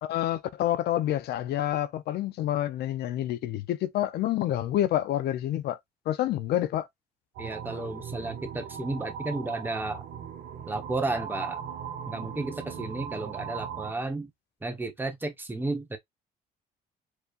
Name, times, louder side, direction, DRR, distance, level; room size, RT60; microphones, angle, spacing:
voice 1, 0.0-5.8 6.1-6.9, left 12 dB, 75° left, 0.8 m, -28 dB
voice 2, 7.4-10.0 10.7-11.6 12.1-14.3 14.6-16.0, right 2 dB, 10° right, 1.2 m, -33 dB
sound 1, 7.4-13.9, right 8 dB, 75° right, 2.1 m, -38 dB
4.8 x 3.3 x 2.5 m
cardioid pair, 110°, 17 cm